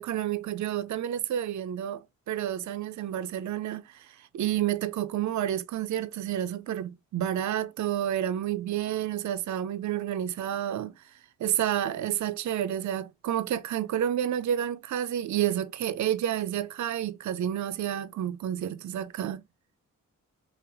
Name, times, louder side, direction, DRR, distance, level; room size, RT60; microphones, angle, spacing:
voice 1, 0.0-11.1 11.4-19.4, right 11 dB, 60° right, 0.5 m, -30 dB
3.3 x 2.8 x 3.3 m
cardioid pair, 55°, 33 cm